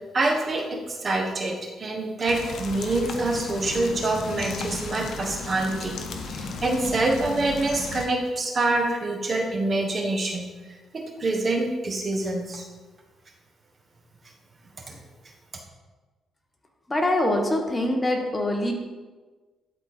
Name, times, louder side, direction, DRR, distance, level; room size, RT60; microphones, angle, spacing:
voice 1, 0.1-6.0 6.3-10.4 10.9-12.6 14.9-15.0, right 2 dB, 35° right, 2 dB, 1.4 m, -26 dB
sound 1, 2.3-8.1, left 3 dB, 70° left, 0.9 m, -35 dB
voice 2, 16.9-18.7, left 1 dB, 20° left, 2 dB, 1.3 m, -24 dB
12.0 x 4.4 x 4.4 m, 1.3 s
cardioid pair, 90°, 0 cm